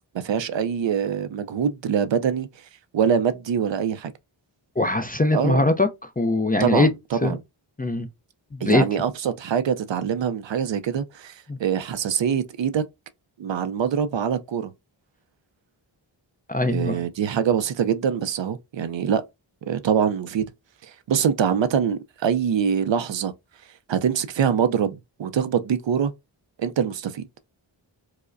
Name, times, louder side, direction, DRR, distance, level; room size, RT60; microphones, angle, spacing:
voice 1, 0.1-2.5 2.9-4.1 5.3-5.7 6.6-7.4 8.6-11.3 11.6-12.8 13.4-14.7 16.6-19.2 19.7-20.5 20.8-23.3 23.9-26.1 26.6-27.2, right 8 dB, 65° right, 0.5 m, -24 dB
voice 2, 4.8-5.9 6.2-6.9 7.2-7.3 7.8-8.1 8.6-8.8 11.5-11.6 16.5-17.0, left 2 dB, 20° left, 0.4 m, -21 dB
4.8 x 2.1 x 2.4 m
wide cardioid pair, 70°, 48 cm